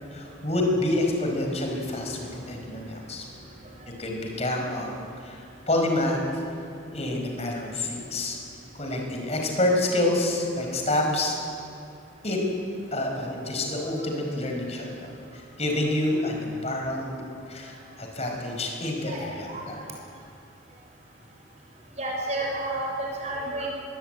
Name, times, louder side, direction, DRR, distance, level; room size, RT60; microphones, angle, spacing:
voice 1, 0.1-3.2 4.0-6.6 6.9-8.4 8.7-11.4 12.2-12.4 12.9-19.8, left 1 dB, 35° left, 2 dB, 5.1 m, -28 dB
voice 2, 22.0-23.7, right 1 dB, 35° right, -1 dB, 6.6 m, -30 dB
22.0 x 21.0 x 9.1 m, 2.5 s
head